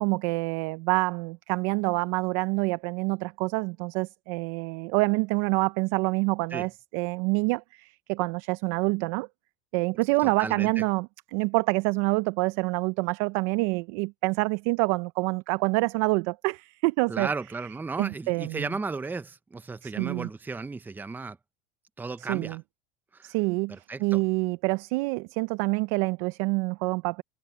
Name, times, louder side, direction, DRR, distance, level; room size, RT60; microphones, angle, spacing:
voice 1, 0.0-9.3 9.7-17.3 18.0-18.7 19.8-20.3 22.2-22.6 23.2-27.2, right 26 dB, 70° right, 0.7 m, -27 dB
voice 2, 10.2-10.8 17.1-21.4 22.0-22.6 23.1-23.3 23.9-24.2, right 4 dB, 10° right, 0.7 m, -34 dB
supercardioid pair, 115°, 17 cm